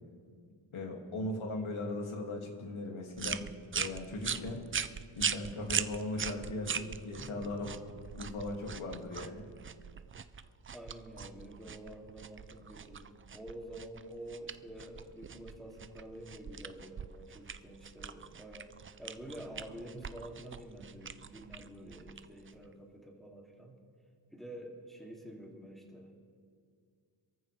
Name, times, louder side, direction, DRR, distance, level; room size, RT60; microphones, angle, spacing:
voice 1, 0.7-4.6 5.2-7.7 8.2-9.5, left 2 dB, 75° left, 1 dB, 2.6 m, -38 dB
sound 1, 3.2-22.7, right 7 dB, 30° right, 0.4 m, -41 dB
voice 2, 7.2-7.6 10.7-18.7 19.0-23.8 24.3-26.1, right 1 dB, ahead, -1 dB, 2.8 m, -48 dB
27.0 x 14.0 x 3.4 m, 2.1 s
wide cardioid pair, 110°, 49 cm